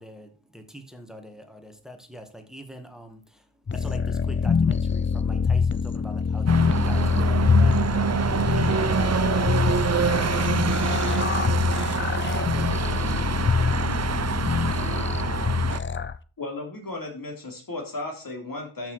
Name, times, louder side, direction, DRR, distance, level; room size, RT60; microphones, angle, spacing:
voice 1, 0.0-7.8 8.2-9.5, equal, ahead, 1.7 m, -44 dB
sound 1, 3.7-16.2, left 5 dB, 25° left, 0.5 m, -24 dB
sound 2, 6.5-15.8, right 6 dB, 35° right, 0.6 m, -26 dB
voice 2, 12.1-13.3 14.6-15.6, right 9 dB, 75° right, 0.9 m, -43 dB
voice 3, 16.4-18.9, left 2 dB, 45° left, 3.5 m, -35 dB
13.0 x 6.1 x 4.8 m
wide cardioid pair, 125°, 49 cm